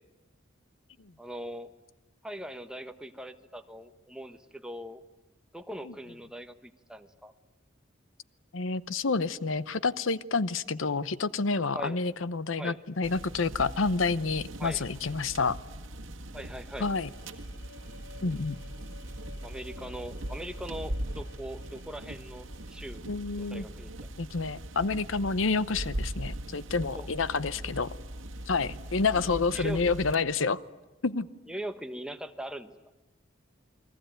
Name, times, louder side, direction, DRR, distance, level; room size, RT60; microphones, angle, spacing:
voice 1, 1.2-1.7 2.2-5.0 5.5-7.3 11.7-12.0 12.6-12.8 14.6-14.9 16.3-16.9 19.4-23.0 23.4-24.1 26.9-27.1 29.1-29.8 31.5-32.7, right 1 dB, 5° right, 7 dB, 1.2 m, -41 dB
voice 2, 8.5-15.6 16.8-17.1 18.2-18.6 23.1-23.6 24.2-27.9 28.5-30.6 31.0-31.3, left 4 dB, 90° left, 16 dB, 0.8 m, -29 dB
sound 1, 13.0-30.2, right 1 dB, 85° right, 1.6 m, -40 dB
sound 2, 16.9-22.9, left 6 dB, 60° left, 1.9 m, -55 dB
29.0 x 22.0 x 9.1 m, 1.1 s
head